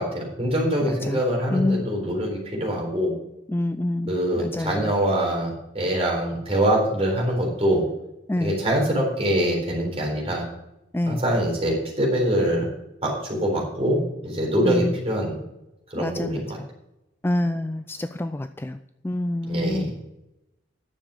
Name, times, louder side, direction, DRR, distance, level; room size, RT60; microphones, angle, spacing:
voice 1, 0.0-3.1 4.1-7.9 8.4-10.5 11.1-12.7 13.0-15.4 15.9-16.6 19.5-20.0, equal, 30° right, -1 dB, 4.0 m, -24 dB
voice 2, 0.9-1.2 1.5-1.9 3.5-4.9 8.3-8.6 10.9-11.2 14.6-14.9 16.0-16.4 17.2-18.8 19.0-19.9, left 1 dB, 10° left, 10 dB, 0.3 m, -27 dB
11.0 x 7.1 x 6.4 m, 0.88 s
head